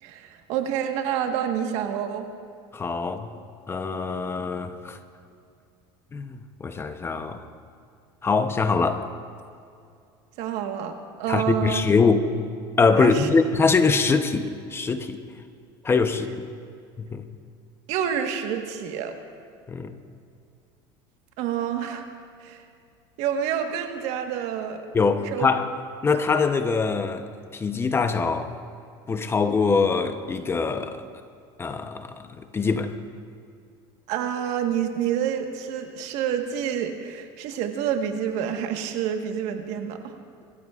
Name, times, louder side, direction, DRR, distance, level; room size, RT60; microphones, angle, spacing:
voice 1, 0.0-2.3 10.4-11.9 13.0-13.3 17.9-19.1 21.4-22.0 22.4-22.6 23.2-24.8 25.2-25.5 34.1-40.1, right 9 dB, 65° right, 5 dB, 1.4 m, -28 dB
voice 2, 2.7-3.3 3.7-5.0 6.1-7.4 8.2-9.1 11.3-12.3 12.8-15.2 15.8-16.5 17.0-17.2 19.7-20.0 24.9-25.7 26.0-27.3 27.5-28.5 29.1-31.1 31.6-32.9, left 4 dB, 20° left, 9 dB, 0.8 m, -23 dB
24.5 x 14.5 x 2.4 m, 2.4 s
supercardioid pair, 120°, 12 cm